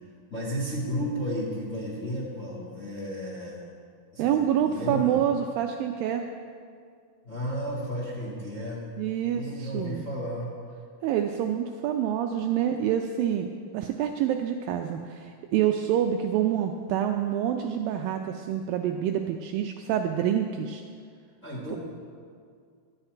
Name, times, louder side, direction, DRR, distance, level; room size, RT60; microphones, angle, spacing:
voice 1, 0.3-3.7 4.1-5.1 7.2-8.8 9.3-10.5 21.4-21.8, equal, 35° left, -5 dB, 1.3 m, -33 dB
voice 2, 4.2-6.3 9.0-10.0 11.0-20.8 21.7-21.8, right 10 dB, 80° right, 5 dB, 2.1 m, -27 dB
12.0 x 5.8 x 8.9 m, 2.1 s
omnidirectional pair, 4.5 m